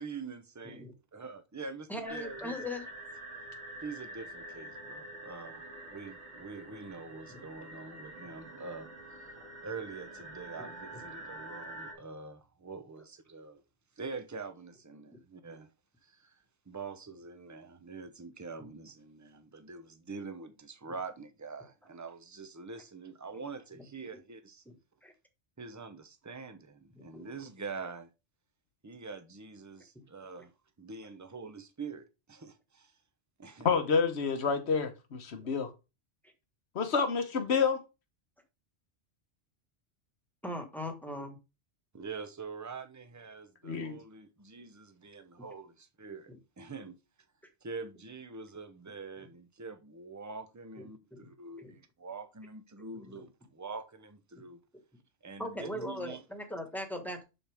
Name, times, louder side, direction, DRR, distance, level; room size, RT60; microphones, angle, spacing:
voice 1, 0.0-2.7 3.8-5.6 5.9-9.3 9.6-13.6 14.0-15.7 16.0-24.6 25.6-28.1 28.8-30.5 30.8-32.9 33.4-33.8 41.9-46.3 46.6-47.0 47.6-54.6 55.2-56.2, right 4 dB, 20° right, 0.7 m, -45 dB
voice 2, 1.9-2.8 24.7-24.8 25.0-25.1 26.9-27.2 40.4-41.4 46.3-46.4 51.1-51.3 51.6-51.7 52.9-53.2 55.4-57.2, left 1 dB, ahead, 1.5 m, -39 dB
sound 1, 2.1-11.9, right 1 dB, 80° right, 2.7 m, -46 dB
voice 3, 33.6-35.7 36.7-37.8 43.6-44.0, left 5 dB, 70° left, 1.3 m, -29 dB
11.0 x 4.4 x 3.5 m
omnidirectional pair, 1.1 m